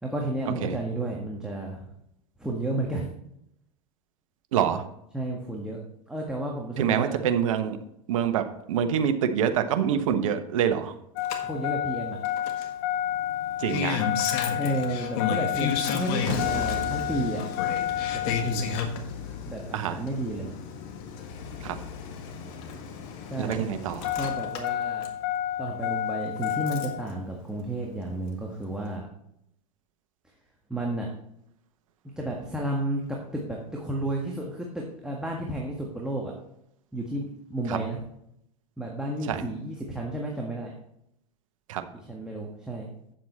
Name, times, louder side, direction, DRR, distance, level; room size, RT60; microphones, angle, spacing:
voice 1, 0.0-1.9 2.4-3.1 5.1-5.8 6.1-7.2 11.4-12.2 14.6-17.4 18.1-18.6 19.5-20.6 23.3-23.7 24.2-25.1 25.6-29.1 30.7-31.1 32.2-33.0 33.3-36.3 36.9-38.0 38.8-40.7 41.9-42.9, right 1 dB, 5° right, -2 dB, 1.6 m, -32 dB
voice 2, 4.5-4.8 6.8-7.8 8.1-11.0 13.6-14.0 19.7-20.0 21.6-21.8 23.4-24.1 37.7-37.8 39.3-39.4 41.7-41.8, right 8 dB, 70° right, 9 dB, 1.1 m, -26 dB
Engine starting, 11.2-27.1 28.3-28.4, left 9 dB, 55° left, 1.6 m, -30 dB
8.9 x 7.6 x 4.3 m, 0.77 s
hypercardioid pair, 90°, 18 cm